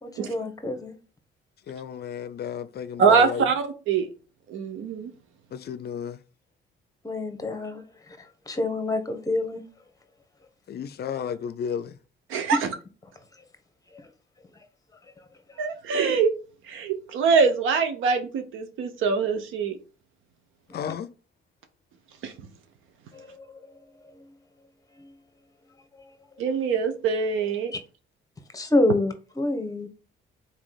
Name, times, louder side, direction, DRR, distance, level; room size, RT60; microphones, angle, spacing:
voice 1, 0.0-0.9 7.0-7.8 8.5-9.6 12.5-12.6 20.7-20.8 23.1-23.4 27.7-27.8 28.5-29.9, left 2 dB, 15° left, 1.1 m, -27 dB
voice 2, 1.7-3.5 5.5-6.2 10.7-12.0 20.7-21.1, left 8 dB, 55° left, 0.5 m, -32 dB
voice 3, 3.0-4.1 4.5-5.1 12.3-12.7 15.6-16.3 16.7-19.8 22.2-22.3 26.4-27.7, right 5 dB, 85° right, 0.9 m, -23 dB
4.1 x 3.0 x 3.9 m
cardioid pair, 90°, 20 cm